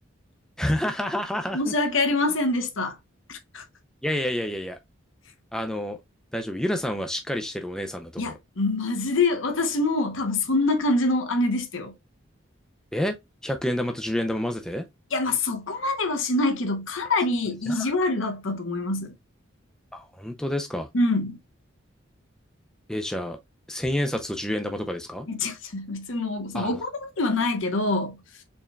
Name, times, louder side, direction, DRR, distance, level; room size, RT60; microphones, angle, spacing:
voice 1, 0.6-1.7 4.0-4.8 5.5-6.0 6.3-8.4 12.9-13.2 13.4-14.8 17.7-17.9 19.9-20.9 22.9-23.4 23.7-25.3 26.5-26.8, left 1 dB, 5° left, 0.4 m, -28 dB
voice 2, 1.5-3.0 3.3-3.6 8.2-11.9 15.1-19.1 20.9-21.4 25.3-28.2, left 2 dB, 70° left, 0.9 m, -25 dB
4.4 x 3.4 x 2.2 m
head